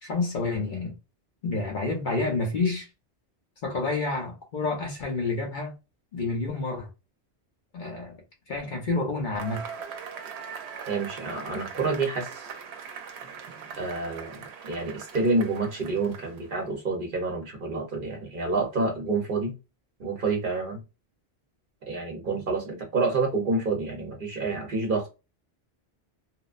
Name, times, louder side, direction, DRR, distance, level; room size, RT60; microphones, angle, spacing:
voice 1, 0.0-1.0 1.4-2.9 3.6-5.7 6.1-6.9 7.7-8.2 8.5-9.6, left 3 dB, 50° left, 0.9 m, -29 dB
Cheering / Applause / Crowd, 9.4-16.6, right 7 dB, 80° right, 0.8 m, -41 dB
voice 2, 10.9-12.5 13.8-19.5 20.0-20.8 21.9-25.1, right 3 dB, 55° right, 0.9 m, -28 dB
2.9 x 2.0 x 2.4 m
omnidirectional pair, 1.1 m